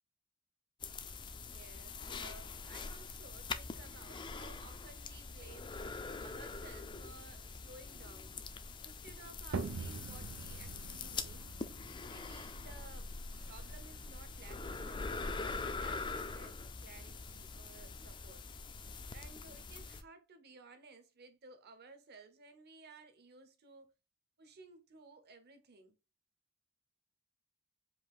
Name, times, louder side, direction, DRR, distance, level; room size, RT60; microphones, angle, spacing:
sound 1, 0.8-20.0, left 4 dB, 25° left, 0.3 m, -44 dB
voice 1, 1.5-5.8 6.2-8.4 8.8-11.5 12.0-13.1 13.5-18.4 19.1-23.9 24.4-26.0, right 3 dB, 50° right, 0.9 m, -57 dB
sound 2, 9.5-15.0, right 4 dB, 75° right, 0.6 m, -45 dB
5.0 x 2.4 x 3.6 m
head